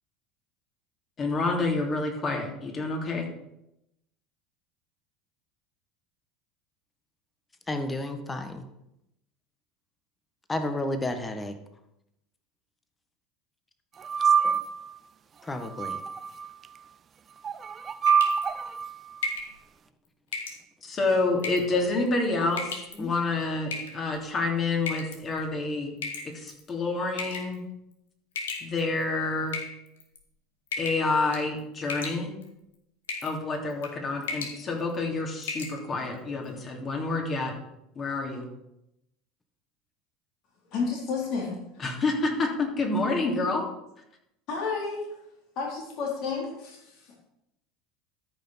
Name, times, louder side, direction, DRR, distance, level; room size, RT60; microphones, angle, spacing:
voice 1, 1.2-3.3 20.8-25.9 26.2-27.6 28.6-29.6 30.8-32.3 33.2-37.5 37.9-38.4 41.8-43.7, left 3 dB, 35° left, 1 dB, 3.1 m, -28 dB
voice 2, 7.7-8.6 10.5-11.6 14.4-14.6 15.4-16.0 23.0-23.1, left 1 dB, 20° left, 8 dB, 1.5 m, -32 dB
sound 1, 14.0-14.9 15.6-16.5 17.4-18.9, right 6 dB, 35° right, 0.5 m, -25 dB
sound 2, 18.1-18.5 19.2-19.5 20.3-20.6 21.4-21.8 22.5-23.0 23.7-24.2 24.9-25.2 26.0-26.6 27.2-27.5 28.4-29.0 29.5-30.2 30.7-31.1 31.3-31.6 31.9-32.5 33.1-33.4 33.7-33.9 34.2-34.6 34.9-35.0 35.4-35.8, left 4 dB, 85° left, 1.7 m, -34 dB
voice 3, 40.7-41.8 44.5-45.2 45.6-47.1, left 4 dB, 55° left, -2 dB, 3.6 m, -31 dB
13.5 x 5.7 x 5.7 m, 0.84 s
hypercardioid pair, 80°, 0 cm